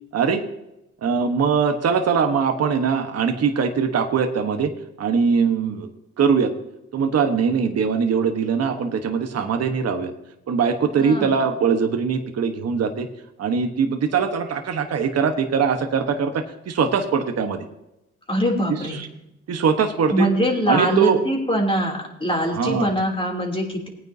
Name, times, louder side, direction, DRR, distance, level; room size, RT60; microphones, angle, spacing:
voice 1, 1.0-4.7 5.0-5.9 6.2-6.5 6.9-10.1 10.5-13.1 13.4-17.6 18.7-19.1 19.5-20.3 20.7-21.2 22.5-22.9, right 6 dB, 55° right, 5 dB, 1.3 m, -21 dB
voice 2, 11.0-11.3 18.3-19.0 20.1-23.9, equal, 15° left, 0 dB, 3.2 m, -23 dB
19.5 x 9.4 x 2.8 m, 0.89 s
cardioid pair, 90°, 30 cm